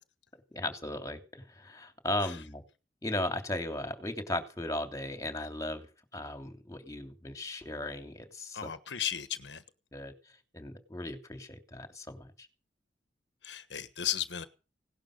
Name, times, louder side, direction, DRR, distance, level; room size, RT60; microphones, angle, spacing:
voice 1, 0.5-2.6 3.0-5.9 6.1-8.6 9.9-10.1 10.5-12.5, left 1 dB, 20° left, 3.0 m, -36 dB
voice 2, 8.5-9.6 13.4-14.5, left 10 dB, 80° left, 1.3 m, -35 dB
18.0 x 12.0 x 6.5 m
head